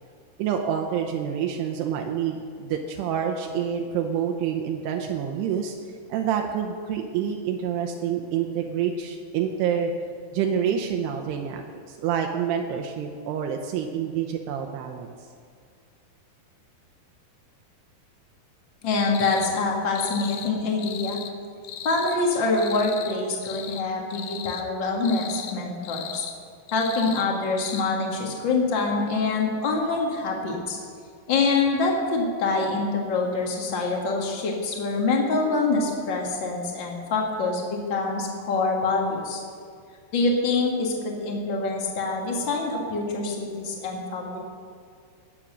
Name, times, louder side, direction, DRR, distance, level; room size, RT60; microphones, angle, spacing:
voice 1, 0.4-5.7 6.1-9.9 10.3-15.1, right 8 dB, 80° right, 3 dB, 2.8 m, -27 dB
voice 2, 18.8-21.2 21.8-26.2 26.7-30.8 31.3-39.4 40.1-44.4, left 3 dB, 60° left, 0 dB, 1.2 m, -25 dB
sound 1, 19.1-19.5 19.9-20.5 20.8-21.3 21.6-22.2 22.5-23.2 23.4-23.8 24.1-24.6 25.0-25.5 25.8-26.3 26.7-27.3 27.6-27.8, left 10 dB, 75° left, 2.2 m, -37 dB
18.0 x 7.3 x 6.3 m, 2.2 s
omnidirectional pair, 4.8 m